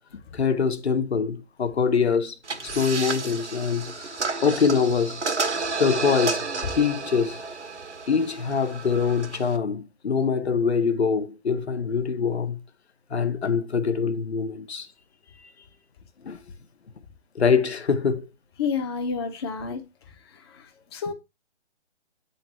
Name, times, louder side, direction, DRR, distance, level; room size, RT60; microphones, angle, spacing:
voice 1, 0.3-2.3 2.7-5.2 5.8-6.5 6.8-7.4 8.1-12.6 13.1-14.9 16.2-16.4 17.3-18.3, left 6 dB, 70° left, 1.3 m, -24 dB
sound 1, 2.4-9.6, right 4 dB, 90° right, 1.5 m, -31 dB
voice 2, 18.6-19.9 20.9-21.1, left 5 dB, 20° left, 0.8 m, -28 dB
8.4 x 3.9 x 4.4 m
figure-of-eight pair, 155°, 34 cm